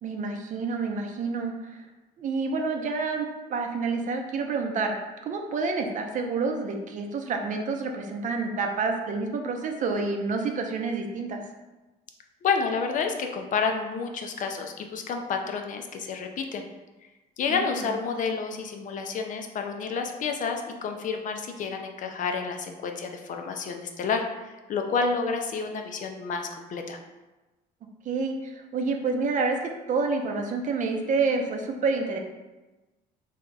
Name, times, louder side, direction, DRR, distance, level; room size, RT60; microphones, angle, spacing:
voice 1, 0.0-1.8 2.2-4.9 5.2-11.4 17.5-17.9 28.1-32.2, right 4 dB, 50° right, 3 dB, 0.6 m, -28 dB
voice 2, 12.4-16.6 17.4-24.2 24.7-27.0, left 5 dB, 50° left, 4 dB, 0.5 m, -29 dB
3.4 x 2.7 x 3.9 m, 1.1 s
cardioid pair, 110°, 17 cm